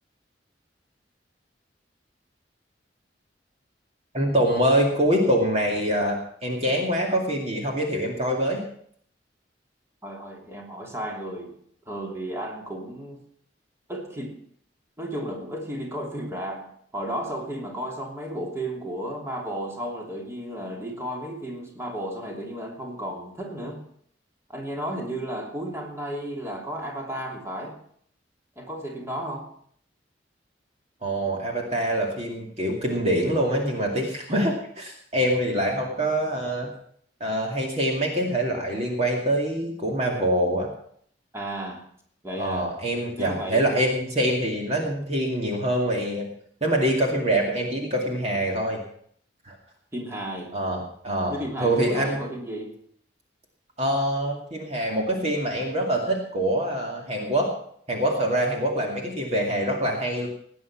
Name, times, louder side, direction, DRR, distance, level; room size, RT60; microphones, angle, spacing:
voice 1, 4.1-8.6 31.0-36.7 37.2-40.7 42.3-46.2 46.6-48.8 49.5-49.6 50.5-51.4 51.6-52.2 53.8-57.5 57.9-60.3, right 1 dB, 35° right, 0 dB, 2.4 m, -25 dB
voice 2, 10.0-11.6 11.9-13.2 13.9-14.4 15.0-23.8 24.5-27.8 28.6-29.5 41.3-41.8 42.2-42.7 43.1-43.6 49.9-50.5 51.3-52.7, right 1 dB, 15° right, 0 dB, 2.9 m, -33 dB
18.5 x 9.5 x 6.0 m, 0.62 s
head